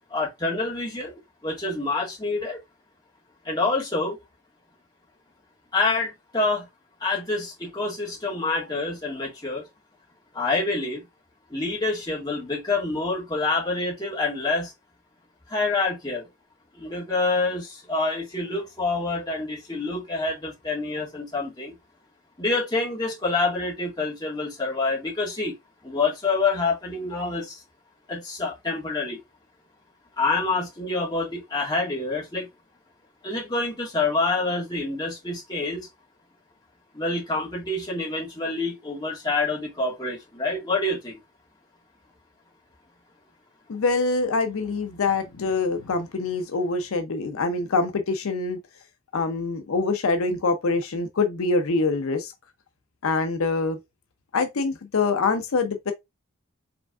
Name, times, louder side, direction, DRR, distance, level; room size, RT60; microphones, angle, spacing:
voice 1, 0.1-2.6 3.4-4.2 5.7-6.7 7.0-9.7 10.3-11.0 11.5-14.7 15.5-16.3 16.7-21.7 22.4-25.5 25.8-27.6 28.1-29.2 30.2-32.5 33.2-35.9 36.9-41.2, left 3 dB, 20° left, 1.5 m, -27 dB
voice 2, 43.7-48.6 49.1-52.3 53.0-53.8 54.3-55.9, left 3 dB, 70° left, 0.5 m, -25 dB
5.0 x 3.3 x 2.3 m
head